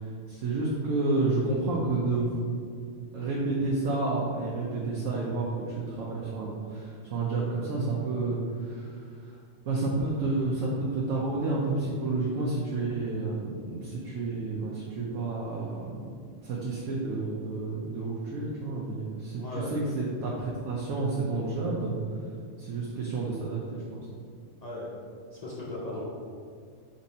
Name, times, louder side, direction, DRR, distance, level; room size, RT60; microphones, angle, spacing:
voice 1, 0.0-2.4 3.1-9.4 9.7-16.1 16.4-22.0 22.6-24.1, right 3 dB, 80° right, -4 dB, 1.0 m, -30 dB
voice 2, 19.4-19.8 24.6-24.9 25.3-26.0, left 2 dB, 50° left, -6 dB, 0.5 m, -37 dB
3.4 x 2.7 x 4.1 m, 2.2 s
omnidirectional pair, 1.3 m